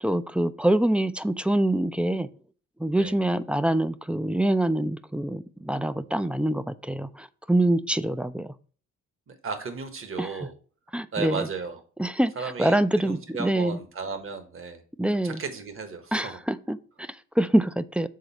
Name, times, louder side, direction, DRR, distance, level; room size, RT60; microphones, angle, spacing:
voice 1, 0.0-2.3 2.8-8.5 10.2-10.3 10.9-11.5 12.0-12.3 12.6-13.8 15.0-15.4 16.1-18.1, right 1 dB, 5° right, 14 dB, 0.4 m, -25 dB
voice 2, 9.3-10.5 11.1-11.8 12.3-14.8 15.1-16.4, right 5 dB, 45° right, 8 dB, 1.5 m, -35 dB
6.5 x 4.0 x 5.8 m, 0.41 s
cardioid pair, 90°, 30 cm